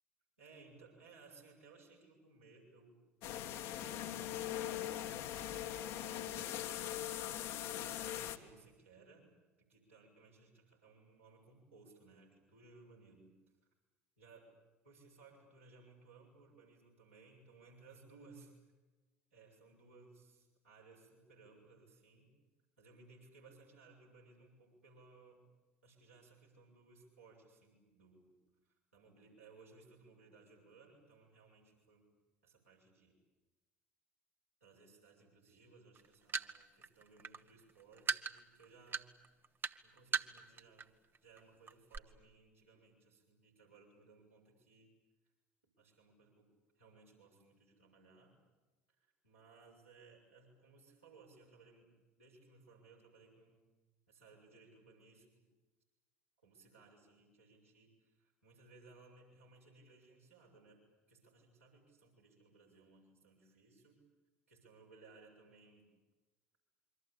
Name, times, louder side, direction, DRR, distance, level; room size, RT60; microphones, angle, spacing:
voice 1, 0.4-6.6 7.6-9.3 9.6-13.3 14.2-14.5 14.8-18.5 19.3-22.3 22.8-25.4 25.8-28.4 28.9-32.1 32.4-33.2 34.6-39.1 39.8-40.9 41.2-44.9 45.8-48.4 49.0-53.7 54.1-55.3 56.4-60.8 61.1-64.0 64.5-65.9, right 3 dB, 85° right, -3 dB, 6.9 m, -62 dB
sound 1, 3.2-8.4, left 11 dB, 65° left, 1.6 m, -41 dB
sound 2, 36.0-40.8 41.1-41.4 41.7-42.0, right 6 dB, 30° right, 1.1 m, -38 dB
27.0 x 24.5 x 8.7 m, 1.2 s
figure-of-eight pair, 55°, 7 cm